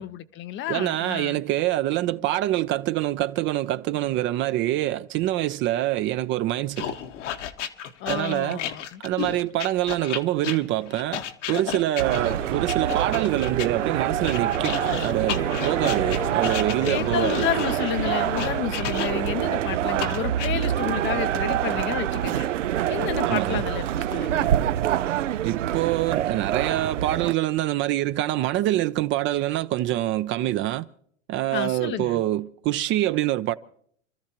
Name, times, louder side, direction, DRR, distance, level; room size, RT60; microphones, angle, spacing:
voice 1, 0.0-1.4 8.0-9.0 16.8-22.5 22.9-24.5 31.5-32.2, left 12 dB, 30° left, 0.6 m, -30 dB
voice 2, 0.7-7.0 8.1-8.6 9.0-11.2 11.5-17.4 23.2-23.6 25.4-30.9 31.3-33.5, right 14 dB, 35° right, 0.5 m, -25 dB
sound 1, 6.8-13.7 14.2-19.4 20.0-20.5, left 9 dB, 75° left, 1.5 m, -33 dB
sound 2, 12.0-27.3, right 11 dB, 80° right, 0.6 m, -26 dB
sound 3, 12.8-23.5, left 12 dB, 55° left, 0.9 m, -41 dB
28.5 x 13.5 x 2.9 m
hypercardioid pair, 105°, 37 cm